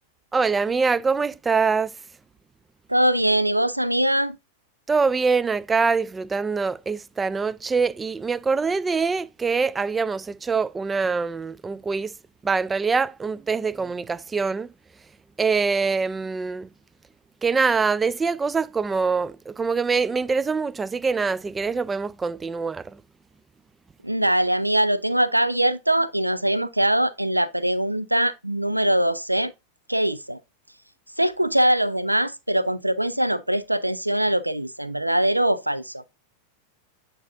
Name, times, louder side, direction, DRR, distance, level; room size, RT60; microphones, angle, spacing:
voice 1, 0.3-1.9 4.9-12.1 12.4-14.7 15.4-16.7 17.4-23.0, right 4 dB, 15° right, 0.3 m, -24 dB
voice 2, 2.9-4.4 24.0-29.5 29.9-30.4 31.2-36.0, right 1 dB, 85° right, 0.4 m, -22 dB
8.9 x 4.1 x 2.6 m
figure-of-eight pair, 90°, 0 cm